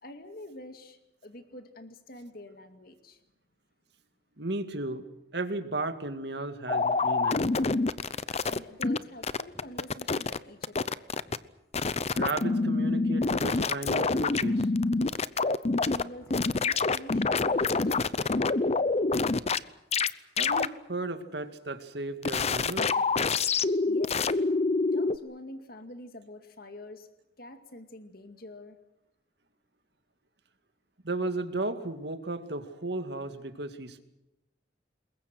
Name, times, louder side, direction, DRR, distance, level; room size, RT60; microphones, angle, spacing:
voice 1, 0.0-3.2 8.1-11.0 15.8-18.8 23.9-24.3 24.8-27.1 27.4-28.8, left 1 dB, 55° left, 8 dB, 2.3 m, -46 dB
voice 2, 4.4-5.1 5.3-7.5 12.2-14.7 20.4-23.0 31.0-34.0, right 2 dB, 65° right, 9 dB, 2.3 m, -34 dB
sound 1, 6.7-9.0 9.2-10.4 10.6-11.4 11.7-16.0 16.3-19.6 19.9-20.1 20.4-20.7 22.2-25.2, left 3 dB, 35° left, 0.7 m, -26 dB
sound 2, 7.3-7.5 7.8-8.0 8.4-8.6 8.9-9.1 9.5-9.7 10.1-10.3 10.7-10.8 11.2-11.4 11.8-11.9 12.3-12.5 12.9-13.0 13.4-13.6 14.0-14.2 14.6-14.8 15.1-15.3 15.7-15.8 16.2-16.4 16.7-16.9 17.2-17.4 17.8-18.0 18.3-19.1 19.4-19.6, equal, 15° left, 4.7 m, -59 dB
28.0 x 21.5 x 6.3 m, 0.90 s
head